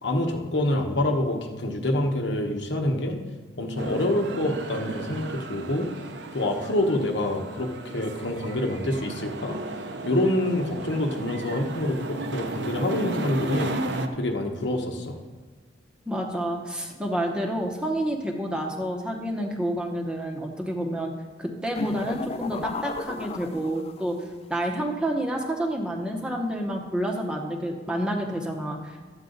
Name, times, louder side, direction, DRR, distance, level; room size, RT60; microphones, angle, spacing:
voice 1, 0.0-3.2 3.6-5.9 6.3-9.6 10.0-13.7 14.1-15.2, left 1 dB, 75° left, 3 dB, 1.2 m, -26 dB
sound 1, 3.8-14.1, right 2 dB, 70° right, 0.7 m, -35 dB
voice 2, 16.1-21.1 21.4-24.2 24.5-29.0, right 1 dB, 5° right, 0 dB, 0.9 m, -29 dB
sound 2, 21.7-24.1, left 3 dB, 35° left, 0.3 m, -33 dB
12.5 x 8.1 x 4.0 m, 1.4 s
head